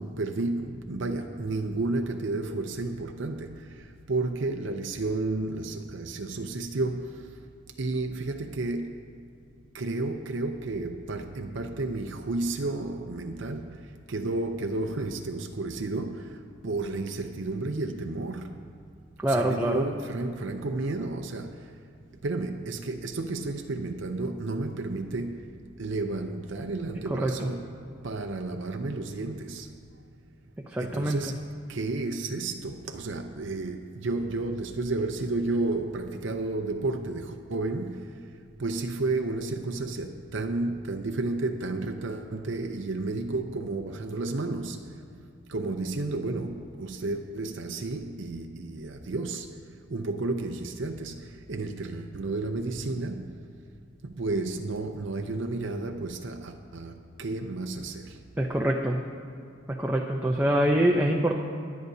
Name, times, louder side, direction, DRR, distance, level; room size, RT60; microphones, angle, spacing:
voice 1, 0.0-7.3 7.8-9.1 9.7-18.6 19.2-21.7 22.2-27.7 28.0-29.7 30.8-31.4 31.7-38.2 38.6-45.0 45.5-49.6 49.9-53.4 54.0-58.2, right 2 dB, 65° right, 0.6 m, -32 dB
voice 2, 19.2-19.9 27.1-27.3 30.7-31.2 58.4-59.0 59.8-61.3, right 1 dB, 10° right, 0.5 m, -24 dB
26.0 x 9.3 x 2.7 m
head